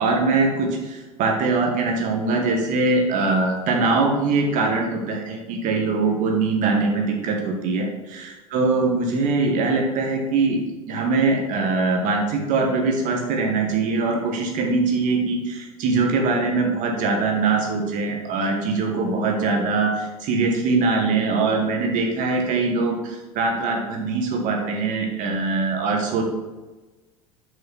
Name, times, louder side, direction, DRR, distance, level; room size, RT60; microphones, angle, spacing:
voice 1, 0.0-10.6 10.9-26.2, right 3 dB, 45° right, 2 dB, 1.6 m, -22 dB
5.7 x 5.6 x 4.3 m, 1.2 s
figure-of-eight pair, 75°, 18 cm